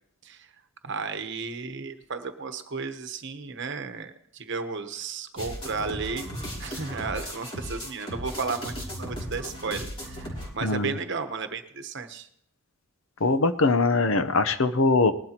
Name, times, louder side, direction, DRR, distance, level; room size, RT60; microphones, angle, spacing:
voice 1, 0.8-6.3 6.6-12.3, right 4 dB, 55° right, 8 dB, 1.0 m, -34 dB
sound 1, 5.4-10.5, equal, 25° left, 3.1 m, -36 dB
voice 2, 10.6-10.9 13.2-15.1, left 3 dB, 65° left, 11 dB, 0.8 m, -22 dB
20.0 x 12.0 x 3.0 m, 0.70 s
head